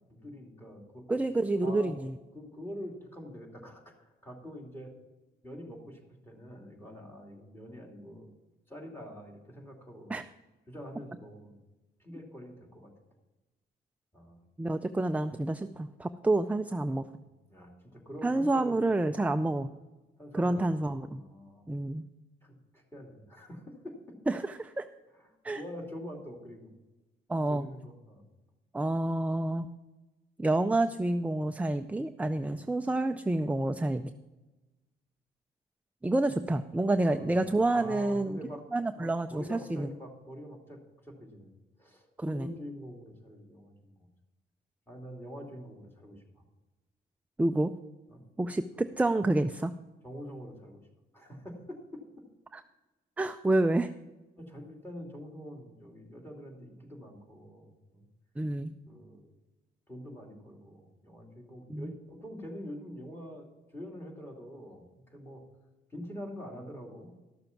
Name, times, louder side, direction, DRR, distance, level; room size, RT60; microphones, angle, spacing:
voice 1, 0.1-1.0 1.6-1.9 2.3-4.9 5.4-8.3 8.7-10.1 10.7-11.6 12.0-12.9 14.1-14.4 17.5-18.8 20.2-21.6 22.4-24.0 25.2-25.3 25.5-26.7 27.5-28.2 37.0-38.6 38.9-41.5 41.8-44.1 44.9-46.2 48.1-48.2 48.7-48.9 50.0-50.8 51.1-52.0 54.4-58.1 58.9-59.3 59.9-63.5 63.7-64.8 65.1-65.5 65.9-67.1, equal, 10° left, 1 dB, 2.8 m, -45 dB
voice 2, 1.1-2.2 10.1-10.2 14.6-17.1 18.2-19.7 20.3-21.2 21.7-22.1 24.3-24.9 25.4-25.6 27.3-27.7 28.7-29.7 30.4-34.1 36.0-38.4 38.7-39.9 42.2-42.5 47.4-47.7 48.4-49.7 52.5-52.6 53.2-53.9 58.4-58.7 61.7-61.9, right 2 dB, 5° right, 9 dB, 0.4 m, -28 dB
13.0 x 6.8 x 5.9 m, 1.1 s
cardioid pair, 90°, 20 cm